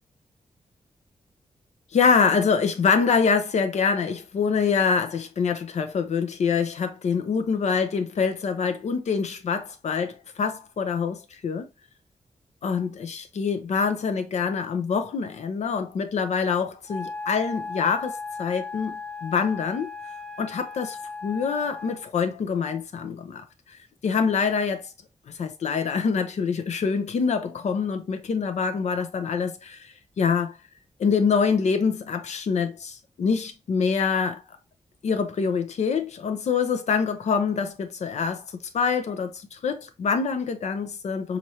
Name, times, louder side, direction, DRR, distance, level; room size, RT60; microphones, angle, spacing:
voice 1, 1.9-11.7 12.6-19.9 20.4-21.0 21.2-23.4 24.0-24.9 25.4-30.5 31.0-34.4 35.0-38.4 38.7-41.4, left 5 dB, 70° left, 0.6 m, -25 dB
Wind instrument woodwind instrument, 16.9-22.1, left 4 dB, 10° left, 0.5 m, -36 dB
4.2 x 2.5 x 2.8 m
wide cardioid pair, 135°, 12 cm